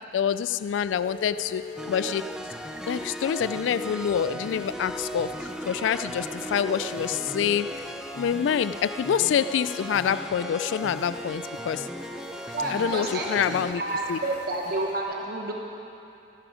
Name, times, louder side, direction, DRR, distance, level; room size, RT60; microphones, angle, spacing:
voice 1, 0.0-2.3 2.9-5.4 5.7-7.9 8.2-11.9 12.7-13.8 14.1-14.2, left 8 dB, 90° left, 14 dB, 0.3 m, -26 dB
sound 1, 0.8-15.0, left 3 dB, 65° left, 1.7 m, -45 dB
sound 2, 1.8-13.7, equal, 5° right, 0.5 m, -37 dB
voice 2, 12.5-15.5, right 2 dB, 55° right, 0 dB, 1.2 m, -30 dB
15.5 x 14.0 x 4.9 m, 2.8 s
head